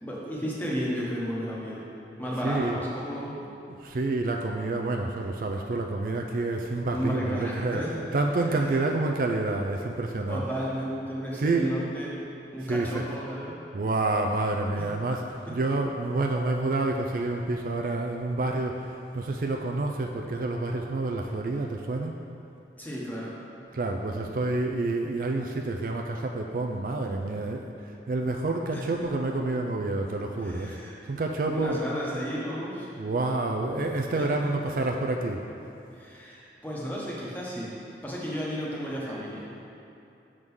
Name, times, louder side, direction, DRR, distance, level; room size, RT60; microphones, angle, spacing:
voice 1, 0.0-1.9 2.2-3.4 6.9-7.9 8.5-8.7 10.3-12.1 12.5-13.6 14.7-14.9 15.4-15.6 22.8-23.3 28.7-29.1 30.4-31.0 31.4-32.9 34.1-34.5 36.0-37.7 38.0-39.6, equal, 10° left, -6 dB, 1.1 m, -33 dB
voice 2, 2.4-2.8 3.8-7.8 8.1-10.4 11.4-11.7 12.6-13.0 13.7-22.2 23.7-30.8 31.1-31.8 33.0-35.4, right 2 dB, 50° right, 2 dB, 0.4 m, -28 dB
6.7 x 3.7 x 6.2 m, 2.7 s
head